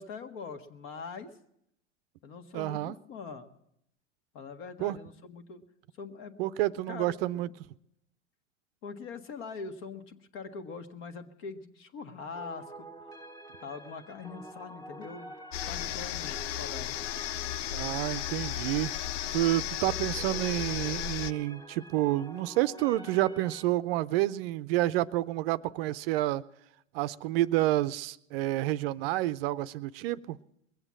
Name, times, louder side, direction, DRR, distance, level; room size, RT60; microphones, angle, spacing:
voice 1, 0.0-1.3 2.2-3.5 4.3-5.6 5.9-6.4 6.9-7.1 8.8-13.2 13.6-15.4 15.7-17.0, left 5 dB, 50° left, 7 dB, 1.6 m, -43 dB
voice 2, 2.5-3.0 4.8-5.0 6.4-7.5 17.7-18.9 19.3-26.4 26.9-30.4, right 16 dB, 50° right, 15 dB, 0.5 m, -29 dB
sound 1, 12.3-23.6, right 1 dB, 10° left, 1.1 m, -48 dB
sound 2, 15.5-21.3, left 12 dB, 70° left, 0.5 m, -34 dB
21.0 x 8.0 x 7.5 m, 0.78 s
hypercardioid pair, 110°, 37 cm